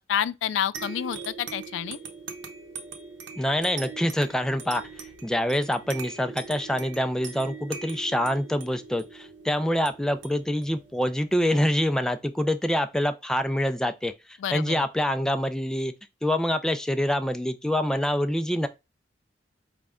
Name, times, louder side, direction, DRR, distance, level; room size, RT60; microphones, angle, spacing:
voice 1, 0.0-2.0 14.4-14.8, left 9 dB, 85° left, 0.3 m, -29 dB
sound 1, 0.7-11.8, right 5 dB, 75° right, 0.8 m, -42 dB
voice 2, 3.4-4.8 5.2-14.1 14.5-15.9 16.2-18.7, equal, 5° left, 0.3 m, -26 dB
5.1 x 2.2 x 3.5 m
head